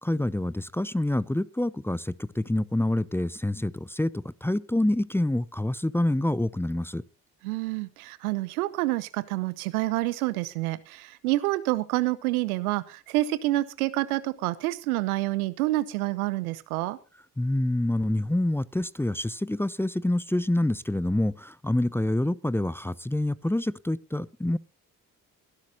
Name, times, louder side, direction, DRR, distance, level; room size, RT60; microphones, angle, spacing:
voice 1, 0.0-7.0 17.4-24.6, left 1 dB, 5° left, 18 dB, 0.6 m, -27 dB
voice 2, 7.4-17.0, right 18 dB, 80° right, 16 dB, 0.9 m, -28 dB
22.5 x 11.5 x 2.7 m, 0.31 s
hypercardioid pair, 45°, 43 cm